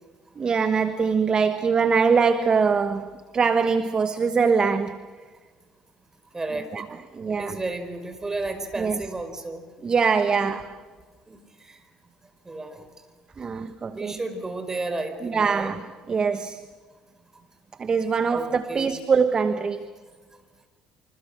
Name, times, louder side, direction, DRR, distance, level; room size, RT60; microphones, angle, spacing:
voice 1, 0.4-5.1 6.7-7.6 8.8-9.0 9.8-10.8 13.4-14.2 15.2-16.7 17.8-19.9, right 5 dB, 35° right, 11 dB, 1.2 m, -23 dB
voice 2, 6.3-6.7 7.3-9.6 10.3-10.5 11.3-11.4 11.7-11.8 12.4-12.8 13.9-15.7 18.3-18.9, right 2 dB, 20° right, 8 dB, 4.9 m, -32 dB
26.5 x 26.0 x 6.7 m, 1.5 s
hypercardioid pair, 65°, 2 cm